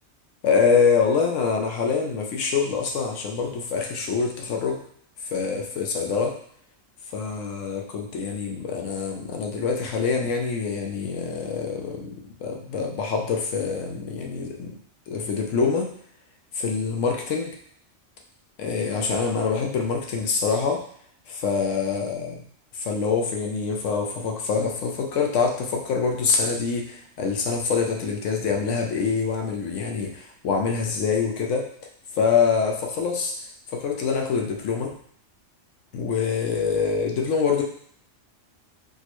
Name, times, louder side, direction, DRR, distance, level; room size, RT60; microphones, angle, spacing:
voice 1, 0.4-4.8 5.2-6.4 7.1-14.8 15.1-15.9 16.5-17.6 18.6-20.8 21.3-22.5 22.7-31.7 32.1-33.3 33.7-35.0 35.9-37.6, left 5 dB, 85° left, 1 dB, 1.0 m, -25 dB
4.3 x 2.1 x 2.9 m, 0.63 s
omnidirectional pair, 1.3 m